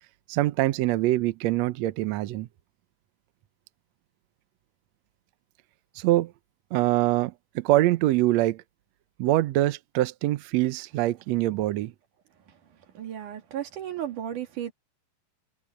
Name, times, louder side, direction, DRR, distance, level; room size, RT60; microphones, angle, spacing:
voice 1, 0.3-2.5 5.9-6.3 6.7-8.6 9.2-11.9, right 16 dB, 90° right, 1.5 m, -24 dB
voice 2, 13.0-14.7, right 10 dB, 60° right, 3.5 m, -34 dB
open air
omnidirectional pair, 4.2 m